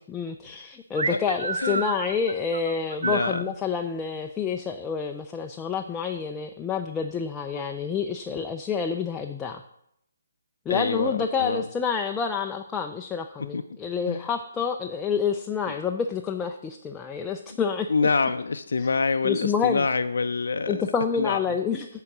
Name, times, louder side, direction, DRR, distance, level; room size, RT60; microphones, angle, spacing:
voice 1, 0.1-9.6 10.7-17.9 19.2-19.8 20.7-21.9, left 6 dB, 10° left, 3 dB, 0.3 m, -28 dB
sound 1, 0.9-3.4, right 4 dB, 75° right, 0.7 m, -30 dB
voice 2, 1.6-1.9 3.0-3.5 7.5-7.6 10.7-11.6 13.5-13.6 14.1-14.2 15.7-15.8 17.9-20.9 21.2-21.6, left 4 dB, 80° left, 8 dB, 0.4 m, -26 dB
9.9 x 3.8 x 5.9 m, 0.75 s
hypercardioid pair, 165°, 0 cm